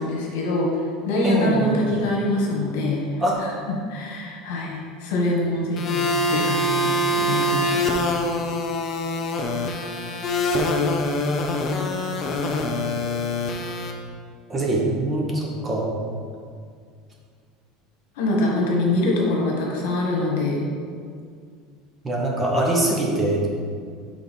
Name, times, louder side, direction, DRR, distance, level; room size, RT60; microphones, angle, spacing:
voice 1, 0.0-3.1 3.4-7.8 18.1-20.6, left 2 dB, 75° left, -2 dB, 1.5 m, -24 dB
voice 2, 1.2-1.8 3.2-3.3 14.5-15.9 22.0-23.5, right 1 dB, 15° right, -2 dB, 0.8 m, -22 dB
sound 1, 5.8-13.9, left 1 dB, 25° left, 0.5 m, -24 dB
6.2 x 3.4 x 5.3 m, 2.1 s
cardioid pair, 170°, 0 cm